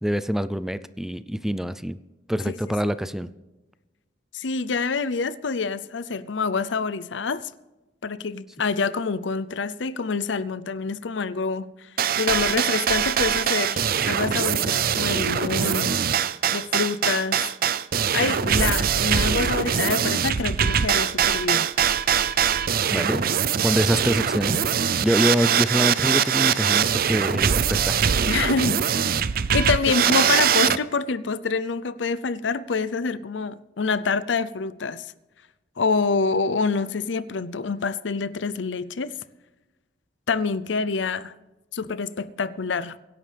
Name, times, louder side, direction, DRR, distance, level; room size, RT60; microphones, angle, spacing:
voice 1, 0.0-2.0 2.3-3.3 22.9-23.3 23.6-24.6 25.0-28.1, equal, ahead, 0.4 m, -25 dB
voice 2, 4.3-7.5 8.0-11.9 12.2-16.0 16.5-17.4 18.1-21.7 28.3-28.8 29.5-35.1 35.8-39.1 40.3-41.3 41.7-43.0, left 4 dB, 80° left, 0.6 m, -26 dB
sound 1, 12.0-30.8, right 8 dB, 55° right, 0.5 m, -22 dB
24.5 x 11.0 x 3.4 m
head